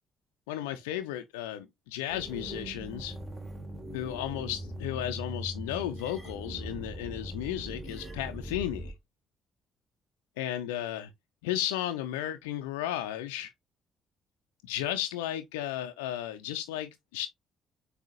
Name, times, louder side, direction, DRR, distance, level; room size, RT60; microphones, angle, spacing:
voice 1, 0.5-3.2 3.9-8.9 10.4-11.1 11.4-13.5 14.6-17.3, left 12 dB, 80° left, 0.4 m, -34 dB
sound 1, 2.1-8.9, right 1 dB, 25° right, 1.7 m, -40 dB
7.4 x 2.8 x 2.5 m
hypercardioid pair, 45°, 0 cm